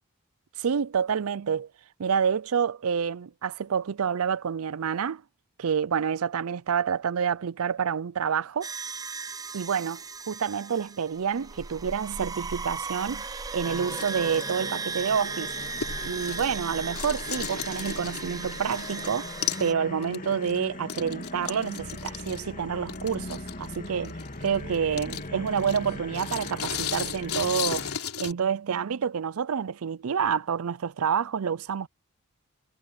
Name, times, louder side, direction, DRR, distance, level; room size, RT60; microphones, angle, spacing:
voice 1, 0.6-1.7 2.0-5.2 5.6-8.7 9.5-15.5 16.0-19.3 19.6-27.9 28.2-31.9, right 7 dB, 75° right, 0.5 m, -28 dB
sound 1, 8.6-19.7, right 4 dB, 15° right, 0.6 m, -36 dB
sound 2, 13.6-28.0, left 2 dB, 40° left, 2.4 m, -40 dB
sound 3, 13.8-16.7 16.9-19.1 19.4-19.7 20.0-28.3, left 8 dB, 85° left, 3.5 m, -36 dB
head